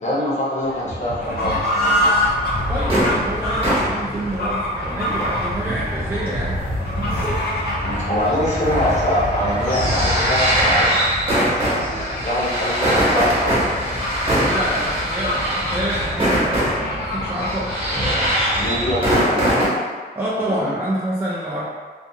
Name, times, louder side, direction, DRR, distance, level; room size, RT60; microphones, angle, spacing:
voice 1, 0.0-2.1 7.8-11.1 11.6-13.8 18.5-19.8 20.4-20.7, left 1 dB, 45° left, -7 dB, 0.8 m, -24 dB
Boat Water vehicle, 0.6-19.6, right 2 dB, 70° right, 0.6 m, -39 dB
Fowl / Bird, 1.0-19.1, left 1 dB, 70° left, 0.6 m, -27 dB
sound 1, 2.2-19.7, equal, 35° right, 1.0 m, -23 dB
voice 2, 2.7-6.6 14.4-17.8 20.2-21.7, right 1 dB, 15° right, -7 dB, 0.4 m, -27 dB
2.5 x 2.3 x 2.7 m, 1.5 s
wide cardioid pair, 125°, 17 cm